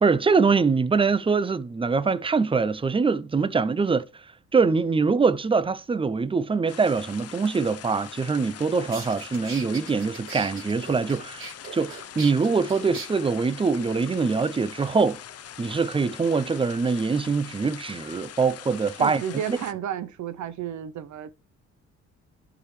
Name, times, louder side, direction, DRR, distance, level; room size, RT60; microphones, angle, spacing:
voice 1, 0.0-4.0 4.5-15.2 15.6-19.2 19.5-19.6, right 4 dB, 20° right, 0.5 m, -23 dB
sound 1, 6.7-19.7, left 10 dB, 55° left, 0.6 m, -43 dB
sound 2, 8.5-8.6 8.9-13.1, right 4 dB, 45° right, 3.1 m, -39 dB
voice 2, 19.0-21.3, right 9 dB, 75° right, 0.6 m, -32 dB
11.5 x 4.8 x 3.1 m
cardioid pair, 105°, 30 cm